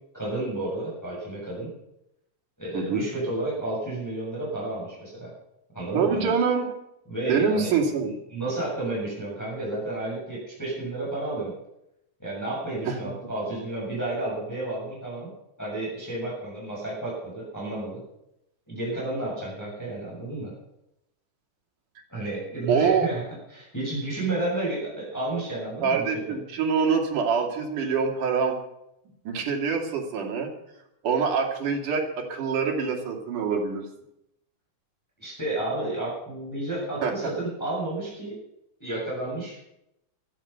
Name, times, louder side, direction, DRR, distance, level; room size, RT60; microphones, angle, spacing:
voice 1, 0.1-1.7 2.6-5.3 5.7-6.3 7.1-7.8 8.3-11.5 12.2-15.3 15.6-18.0 18.7-20.5 22.1-23.2 23.5-26.1 35.2-38.4 38.8-39.6, right 2 dB, 5° left, -6 dB, 7.2 m, -31 dB
voice 2, 5.9-6.7 7.3-8.1 12.9-13.0 22.7-23.1 25.8-28.5 29.3-30.5 31.0-33.9 37.0-37.1, right 5 dB, 75° right, 1 dB, 3.8 m, -25 dB
16.0 x 13.0 x 5.8 m, 0.83 s
omnidirectional pair, 3.6 m